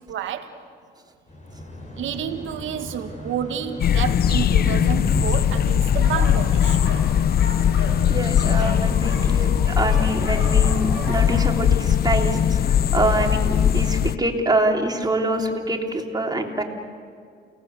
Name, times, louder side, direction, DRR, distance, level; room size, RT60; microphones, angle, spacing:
voice 1, 0.1-0.5 2.0-6.8, right 9 dB, 80° right, 7 dB, 1.9 m, -29 dB
sound 1, 1.3-11.6, left 1 dB, 35° left, 4.9 m, -34 dB
sound 2, 3.8-14.1, left 9 dB, 50° left, 0.6 m, -20 dB
sound 3, 6.0-7.1 7.4-11.4, left 2 dB, 80° left, 4.5 m, -35 dB
voice 2, 8.1-16.6, right 1 dB, 20° right, 2 dB, 3.3 m, -25 dB
30.0 x 18.5 x 8.0 m, 2.2 s
cardioid pair, 90°, 20 cm